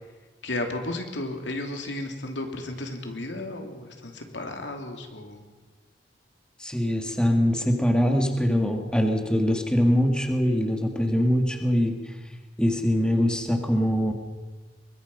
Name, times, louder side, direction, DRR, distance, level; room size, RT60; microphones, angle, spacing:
voice 1, 0.4-5.5, left 2 dB, 90° left, 4 dB, 2.9 m, -33 dB
voice 2, 6.6-11.9 12.6-14.1, equal, 5° left, 4 dB, 1.9 m, -23 dB
23.0 x 21.5 x 5.5 m, 1.2 s
head